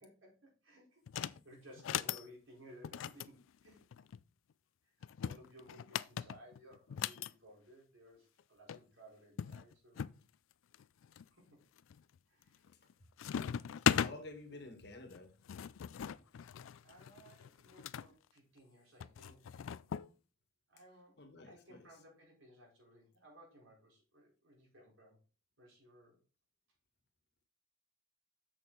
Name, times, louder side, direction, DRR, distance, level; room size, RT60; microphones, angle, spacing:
voice 1, 0.0-3.4 3.6-3.8 4.8-4.9 5.2-10.0 11.1-11.6 12.3-12.6 14.5-14.8 16.8-19.8 20.7-21.2 21.4-25.2 25.6-26.2, equal, 80° right, 4.2 m, -59 dB
sound 1, 1.1-1.4 1.8-2.2 2.8-4.2 5.0-7.3 8.4-8.5 8.7-8.8 9.4-10.2 10.7-11.2 11.8-12.2 12.5-12.9 13.2-14.1 15.1-18.1 19.0-20.1, left 8 dB, 80° left, 0.3 m, -38 dB
voice 2, 13.5-15.3 21.2-21.8, left 2 dB, 55° left, 1.6 m, -51 dB
7.4 x 6.4 x 3.9 m
head